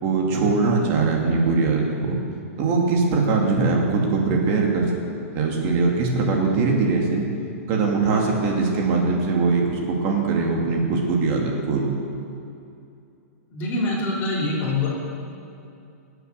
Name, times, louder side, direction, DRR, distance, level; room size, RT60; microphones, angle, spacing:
voice 1, 0.0-2.2 2.6-4.9 5.3-7.3 7.7-11.8, right 4 dB, 30° right, 0 dB, 2.5 m, -21 dB
voice 2, 13.5-14.9, left 2 dB, 25° left, -4 dB, 3.2 m, -24 dB
19.5 x 8.0 x 6.7 m, 2.6 s
hypercardioid pair, 165°, 8 cm